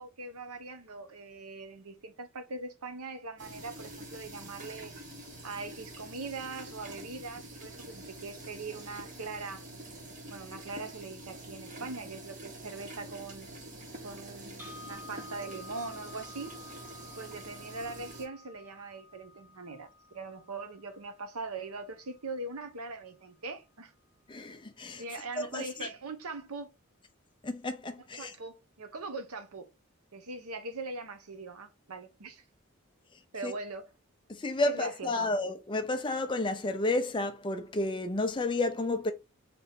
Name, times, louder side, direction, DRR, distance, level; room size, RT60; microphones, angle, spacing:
voice 1, 0.0-4.9 5.4-9.6 10.3-13.5 14.0-16.5 17.2-19.9 20.1-23.9 25.0-26.7 28.1-29.7 30.1-32.4 33.3-33.9 34.6-35.3, right 3 dB, 85° right, 0.9 m, -41 dB
sound 1, 3.4-18.3, right 1 dB, 35° right, 1.1 m, -46 dB
sound 2, 14.6-22.6, left 3 dB, 10° right, 0.9 m, -52 dB
voice 2, 24.3-25.0 25.4-25.9 27.4-28.3 33.4-33.5 34.3-39.1, left 2 dB, 20° left, 0.5 m, -31 dB
3.4 x 3.0 x 4.1 m
head